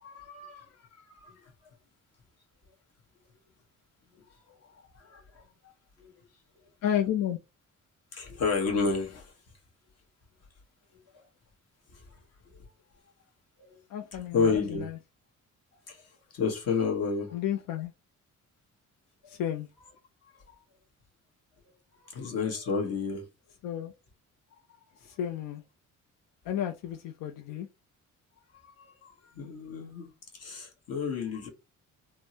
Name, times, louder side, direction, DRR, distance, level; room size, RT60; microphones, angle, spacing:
voice 1, 0.0-0.7 1.1-1.3 5.1-5.7 8.1-9.3 13.6-13.7 14.3-14.9 15.9-16.0 16.3-17.3 22.0-23.3 29.0-31.5, left 5 dB, 50° left, 1.1 m, -31 dB
voice 2, 6.8-7.4 13.9-15.0 17.3-17.9 19.3-19.7 23.6-23.9 25.0-25.6 26.4-27.7, left 10 dB, 85° left, 0.5 m, -32 dB
3.5 x 2.0 x 2.7 m
cardioid pair, 125°, 32 cm